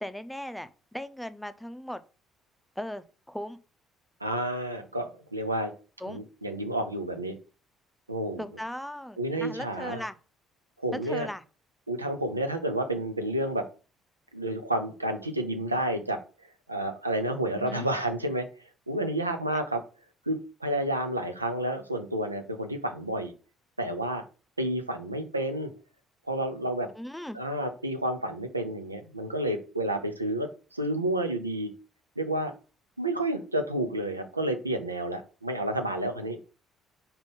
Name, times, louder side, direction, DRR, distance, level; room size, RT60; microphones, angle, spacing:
voice 1, 0.0-2.0 2.8-3.6 6.0-6.2 8.4-10.2 11.0-11.4 17.6-17.9 26.9-27.4, equal, 5° left, 11 dB, 0.7 m, -38 dB
voice 2, 4.2-5.7 6.1-7.3 8.1-8.4 9.2-10.0 10.8-11.3 11.9-13.6 14.3-16.2 16.7-18.4 18.9-19.8 20.3-23.3 23.8-24.2 24.6-25.7 26.3-26.9 27.3-31.7 32.2-32.5 33.0-36.4, right 1 dB, 85° right, 6 dB, 0.7 m, -30 dB
5.2 x 4.4 x 5.3 m, 0.35 s
figure-of-eight pair, 50°, 0 cm